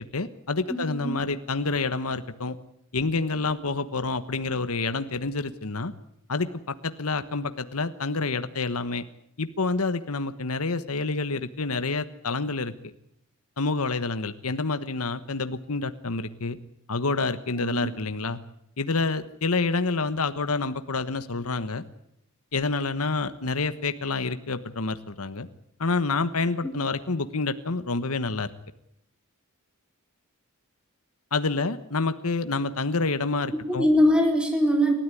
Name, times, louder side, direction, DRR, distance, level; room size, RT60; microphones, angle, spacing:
voice 1, 0.1-2.6 2.9-5.9 6.3-9.0 9.4-12.7 13.6-16.6 16.9-18.4 18.8-21.8 22.5-25.5 25.8-28.5 31.3-33.9, left 3 dB, 80° left, 10 dB, 1.3 m, -28 dB
voice 2, 0.7-1.3 17.5-17.9 26.6-26.7 33.5-34.9, equal, 5° right, 2 dB, 4.4 m, -23 dB
28.5 x 13.5 x 9.9 m, 0.76 s
head